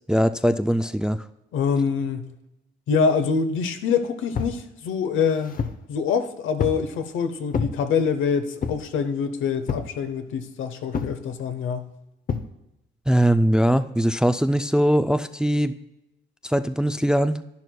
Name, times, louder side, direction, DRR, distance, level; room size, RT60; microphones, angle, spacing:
voice 1, 0.1-1.2 13.1-15.7 16.4-17.4, equal, 5° right, 11 dB, 0.3 m, -21 dB
voice 2, 1.5-2.3 2.9-5.6 5.9-11.9, left 6 dB, 80° left, 9 dB, 0.9 m, -25 dB
sound 1, 4.3-4.6 5.2-5.9 6.6-6.9 7.5-7.8 8.6-8.9 9.7-10.0 10.9-11.2 12.3-12.5, left 5 dB, 45° left, 0.7 m, -28 dB
10.5 x 10.5 x 2.3 m, 0.89 s
cardioid pair, 90°, 20 cm